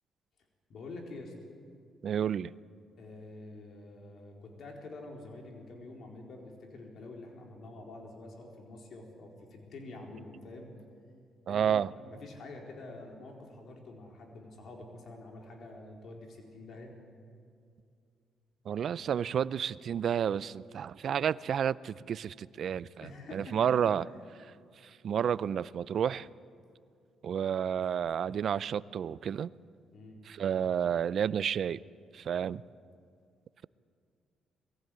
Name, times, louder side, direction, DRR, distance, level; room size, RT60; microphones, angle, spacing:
voice 1, 0.7-1.3 3.0-10.7 11.5-16.9 23.0-23.9 29.9-30.2, left 2 dB, 60° left, 1 dB, 4.2 m, -47 dB
voice 2, 2.0-2.5 11.5-11.9 18.7-24.0 25.0-26.3 27.2-29.5 30.3-31.8 32.1-32.6, right 8 dB, 60° right, 19 dB, 0.5 m, -30 dB
21.5 x 15.5 x 9.3 m, 2.3 s
cardioid pair, 90°, 0 cm